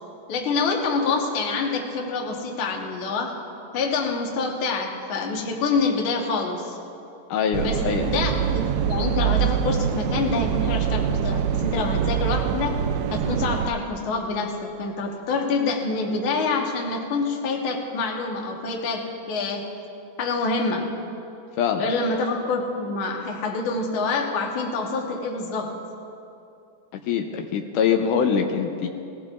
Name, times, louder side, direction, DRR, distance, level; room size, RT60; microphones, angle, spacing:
voice 1, 0.3-3.4 3.7-6.8 7.6-7.8 8.1-12.8 13.1-19.7 20.2-20.9 21.8-25.7, left 4 dB, 50° left, 0 dB, 1.7 m, -26 dB
voice 2, 7.3-8.1 21.6-21.9 27.1-28.9, left 7 dB, 80° left, 4 dB, 2.2 m, -23 dB
sound 1, 7.5-13.7, right 8 dB, 80° right, 1.8 m, -24 dB
20.5 x 16.5 x 2.5 m, 2.7 s
omnidirectional pair, 3.7 m